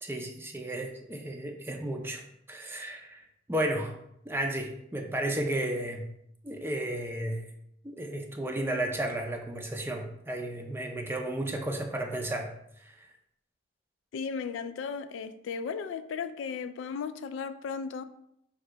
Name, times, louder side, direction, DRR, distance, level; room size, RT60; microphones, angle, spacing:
voice 1, 0.0-2.2 2.5-4.0 4.3-6.1 6.4-7.4 7.8-12.5 12.8-12.9, right 1 dB, 10° right, 2 dB, 0.4 m, -33 dB
voice 2, 14.1-18.0, left 5 dB, 85° left, 11 dB, 0.3 m, -35 dB
4.9 x 2.7 x 3.3 m, 0.76 s
head